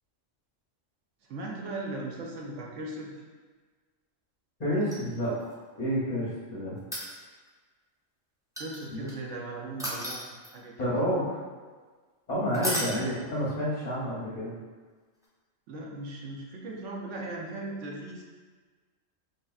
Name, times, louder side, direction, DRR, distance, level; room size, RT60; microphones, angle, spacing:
voice 1, 1.3-3.1 8.6-10.2 10.5-10.9 12.8-13.1 13.9-14.0 15.7-18.2, right 2 dB, 70° right, -1 dB, 0.9 m, -38 dB
voice 2, 4.6-5.3 5.8-6.8 8.9-9.0 10.8-11.4 12.3-14.5, equal, 40° left, -6 dB, 0.8 m, -29 dB
sound 1, 4.8-5.5 6.8-7.5 8.6-9.1 9.8-10.7 12.5-13.0 15.2-15.3, equal, 5° right, 0.3 m, -34 dB
4.7 x 2.8 x 2.3 m, 1.4 s
omnidirectional pair, 1.3 m